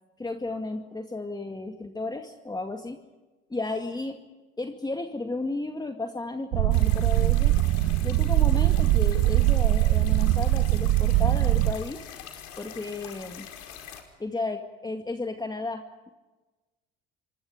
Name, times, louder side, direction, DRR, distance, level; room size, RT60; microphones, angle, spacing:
voice 1, 0.2-3.0 3.5-4.2 4.6-7.5 8.0-12.1 12.6-13.5 14.2-16.1, left 2 dB, 15° left, 5 dB, 2.1 m, -33 dB
sound 1, 6.5-11.7, right 16 dB, 65° right, 1.0 m, -22 dB
sound 2, 6.7-14.0, left 9 dB, 60° left, 5.0 m, -44 dB
28.0 x 24.0 x 5.1 m, 1.2 s
hypercardioid pair, 60°, 30 cm